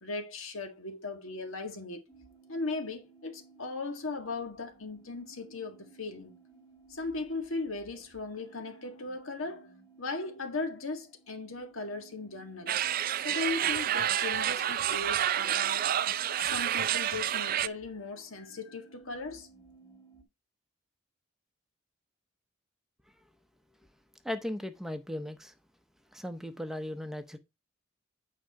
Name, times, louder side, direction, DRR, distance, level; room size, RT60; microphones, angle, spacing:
voice 1, 0.0-2.0 2.5-6.4 6.9-9.7 10.0-12.8 13.2-15.9 16.4-19.5, left 3 dB, 85° left, 1.7 m, -38 dB
sound 1, 2.1-20.2, right 4 dB, 15° left, 2.3 m, -58 dB
sound 2, 12.7-17.7, right 10 dB, 45° right, 0.3 m, -29 dB
voice 2, 24.2-25.5 26.1-27.4, left 1 dB, ahead, 0.7 m, -37 dB
9.1 x 4.9 x 4.5 m
head